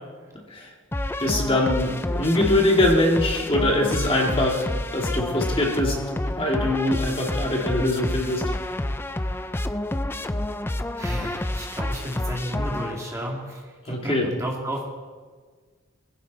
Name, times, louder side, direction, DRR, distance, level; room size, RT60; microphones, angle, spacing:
sound 1, 0.9-13.3, left 1 dB, 10° left, 0.4 m, -29 dB
voice 1, 1.2-4.6 4.9-6.0 6.2-8.5 12.5-12.7 13.9-14.3, left 1 dB, 25° left, 0 dB, 2.3 m, -23 dB
voice 2, 11.0-14.8, equal, 15° right, -2 dB, 2.5 m, -32 dB
20.5 x 15.5 x 4.1 m, 1.5 s
head